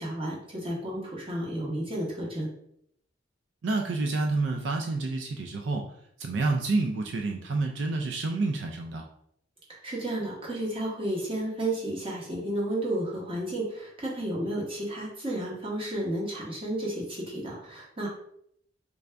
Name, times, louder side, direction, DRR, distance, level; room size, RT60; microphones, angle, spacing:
voice 1, 0.0-2.5 9.7-18.1, right 1 dB, 30° right, -4 dB, 1.0 m, -32 dB
voice 2, 3.6-5.9 6.2-9.1, right 3 dB, 75° right, 2 dB, 0.4 m, -28 dB
3.3 x 2.5 x 3.4 m, 0.71 s
head